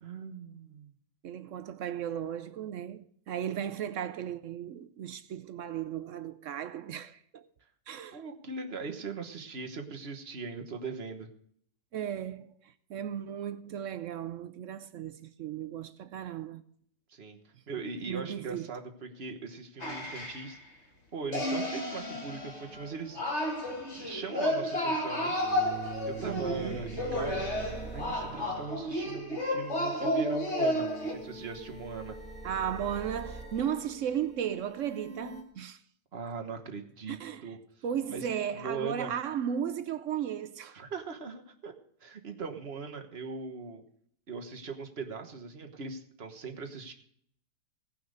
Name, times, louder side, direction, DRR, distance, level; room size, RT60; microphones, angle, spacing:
voice 1, 0.0-0.9 8.1-11.3 17.1-20.6 21.1-23.2 24.0-25.3 26.0-32.2 36.1-37.6 38.1-39.1 40.7-41.7 42.0-43.8 44.3-46.9, right 4 dB, 40° right, 1.4 m, -40 dB
voice 2, 1.2-7.5 7.9-8.2 11.9-16.6 18.1-18.7 26.2-26.8 32.4-35.8 37.1-37.5 37.8-40.8, right 9 dB, 65° right, 0.8 m, -35 dB
sound 1, 19.8-20.5 21.3-31.1, left 1 dB, 40° left, 2.9 m, -32 dB
sound 2, 22.7-22.8 24.9-29.3 30.2-35.4, right 4 dB, 5° left, 2.5 m, -44 dB
17.0 x 5.8 x 6.4 m
omnidirectional pair, 1.8 m